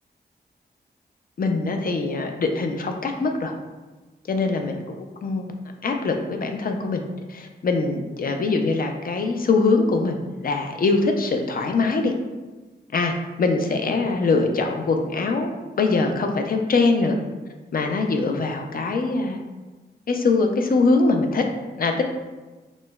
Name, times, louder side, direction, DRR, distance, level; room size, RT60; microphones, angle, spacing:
voice 1, 1.4-3.5 4.3-4.8 5.2-5.5 5.8-12.1 12.9-17.2 17.7-19.4 20.1-21.4 21.8-22.0, left 3 dB, 55° left, 4 dB, 0.4 m, -23 dB
6.0 x 2.0 x 2.3 m, 1.2 s
wide cardioid pair, 85°, 18 cm